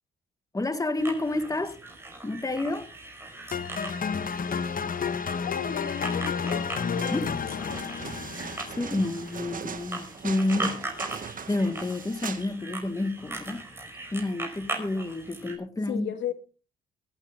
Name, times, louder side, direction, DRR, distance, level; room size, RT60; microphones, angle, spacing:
voice 1, 0.5-1.8 2.2-2.9 7.1-7.3 8.8-10.9 11.5-13.7 14.1-16.1, left 2 dB, 15° left, 1.7 m, -29 dB
sound 1, 1.0-15.6, right 2 dB, 10° right, 4.7 m, -40 dB
sound 2, 3.5-9.6, left 6 dB, 45° left, 1.3 m, -31 dB
voice 2, 5.4-7.9 15.9-16.3, left 9 dB, 70° left, 1.7 m, -35 dB
sound 3, 6.9-12.5 12.8-12.9, right 6 dB, 45° right, 1.7 m, -40 dB
23.5 x 8.9 x 3.6 m
cardioid pair, 90°, 20 cm